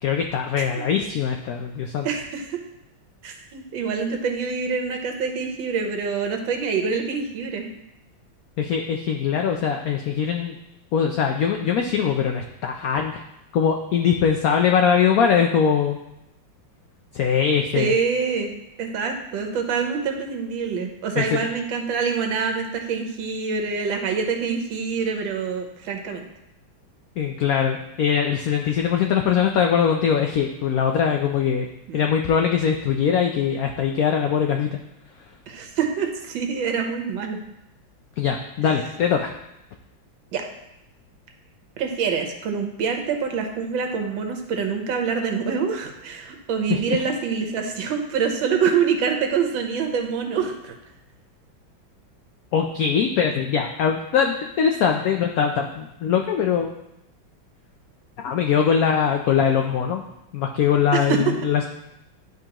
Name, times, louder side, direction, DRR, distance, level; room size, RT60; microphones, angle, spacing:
voice 1, 0.0-2.1 8.6-10.6 10.9-13.2 13.5-16.0 17.1-17.9 21.2-21.4 27.2-31.7 31.9-34.7 38.2-39.3 46.9-47.0 52.5-56.7 58.2-60.0 60.3-61.6, left 7 dB, 85° left, 3 dB, 0.7 m, -22 dB
voice 2, 2.0-2.6 3.2-7.7 17.7-18.5 18.8-26.3 31.9-32.0 35.5-37.4 40.3-40.5 41.8-50.8 60.9-61.3, right 6 dB, 80° right, 4 dB, 1.6 m, -25 dB
10.5 x 3.8 x 2.9 m, 0.88 s
omnidirectional pair, 2.1 m